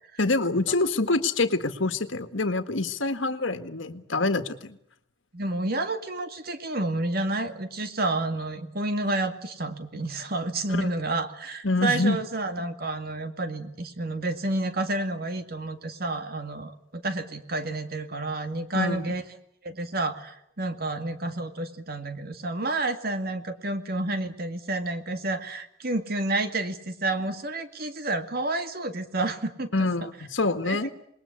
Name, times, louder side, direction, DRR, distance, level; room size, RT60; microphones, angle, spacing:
voice 1, 0.2-4.8 10.7-10.9 11.6-12.2 18.7-19.0 29.7-30.9, left 2 dB, 85° left, 9 dB, 1.8 m, -26 dB
voice 2, 5.3-19.2 19.6-29.7 30.6-30.8, right 2 dB, 55° right, 8 dB, 2.2 m, -30 dB
27.0 x 20.5 x 8.4 m, 0.75 s
head